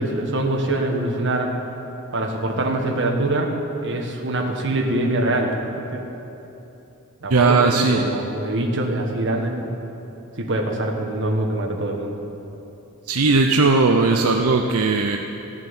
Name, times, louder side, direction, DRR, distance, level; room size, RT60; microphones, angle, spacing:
voice 1, 0.0-1.5 2.1-3.5 3.8-5.5 5.9-6.0 7.2-9.8 10.4-12.2, right 1 dB, 55° right, 1 dB, 1.7 m, -24 dB
voice 2, 7.3-8.1 13.1-15.2, right 3 dB, 80° right, 3 dB, 0.7 m, -18 dB
14.5 x 7.4 x 9.8 m, 3.0 s
head